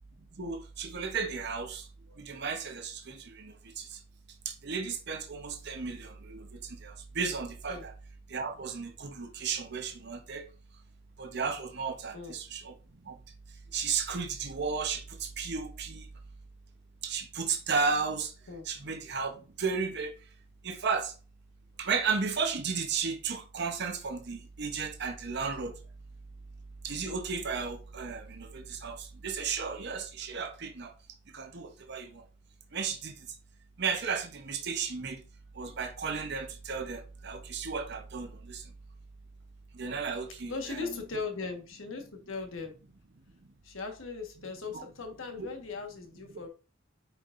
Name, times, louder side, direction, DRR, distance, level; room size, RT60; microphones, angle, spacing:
voice 1, 0.4-4.0 4.4-7.9 8.3-10.5 11.2-12.7 13.0-13.2 13.7-16.1 17.0-18.3 18.7-20.1 20.6-21.1 21.8-25.8 26.8-30.9 31.3-32.2 32.7-33.3 33.8-35.2 35.5-38.7 39.7-40.9 44.7-44.8 45.4-45.5, right 5 dB, 55° right, 0.8 m, -34 dB
voice 2, 40.5-42.7 43.6-46.5, left 4 dB, 80° left, 1.4 m, -38 dB
8.9 x 4.7 x 2.5 m
head